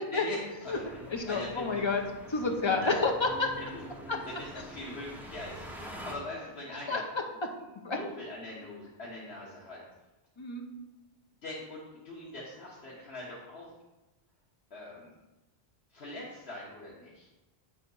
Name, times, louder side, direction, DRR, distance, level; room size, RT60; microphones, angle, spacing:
voice 1, 0.0-1.8 2.8-2.9 3.6-7.0 7.9-9.8 11.4-13.7 14.7-15.1 15.9-17.3, left 1 dB, 80° left, -6 dB, 1.5 m, -42 dB
sound 1, 0.6-6.2, equal, ahead, 0.8 m, -46 dB
voice 2, 1.1-2.0 2.3-3.5 4.1-4.2 6.9-7.0 7.8-8.0 10.4-10.7, left 3 dB, 30° left, 2 dB, 0.8 m, -29 dB
8.5 x 3.6 x 5.4 m, 1.0 s
omnidirectional pair, 1.0 m